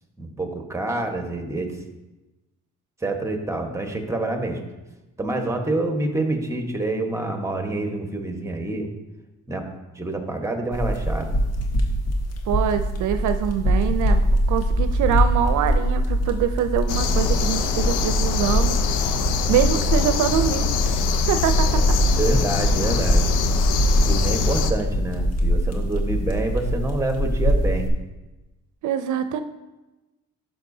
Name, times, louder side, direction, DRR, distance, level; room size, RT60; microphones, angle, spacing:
voice 1, 0.2-1.8 3.0-4.6 5.2-8.9 9.5-9.6 9.9-11.3 22.2-23.3 24.0-27.9, right 2 dB, 10° right, 4 dB, 1.2 m, -27 dB
sound 1, 10.7-27.9, equal, 55° left, 1.4 m, -23 dB
voice 2, 12.5-18.8 19.5-21.0 21.3-21.8 28.8-29.4, right 9 dB, 75° right, 9 dB, 0.5 m, -24 dB
sound 2, 16.9-24.7, left 5 dB, 85° left, 0.7 m, -24 dB
11.5 x 5.9 x 2.7 m, 1.1 s
cardioid pair, 90°, 30 cm